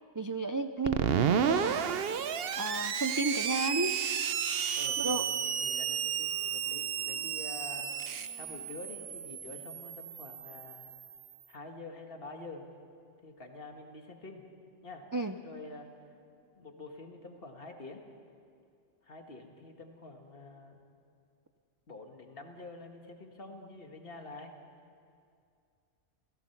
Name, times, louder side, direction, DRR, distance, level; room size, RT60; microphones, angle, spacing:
voice 1, 0.2-1.9 2.6-4.0 5.0-5.3 15.1-15.3, right 2 dB, 30° right, 7 dB, 0.3 m, -32 dB
Screech, 0.9-11.3, right 8 dB, 60° right, 0.9 m, -32 dB
Wind instrument woodwind instrument, 2.8-9.5, right 2 dB, 80° right, 5.8 m, -58 dB
voice 2, 4.7-7.9 8.3-10.8 11.5-12.6 13.2-14.5 14.8-15.1 15.4-15.9 16.6-18.0 19.0-20.8 21.9-24.5, left 2 dB, 50° left, 3 dB, 1.9 m, -47 dB
29.0 x 16.0 x 5.9 m, 2.4 s
omnidirectional pair, 1.2 m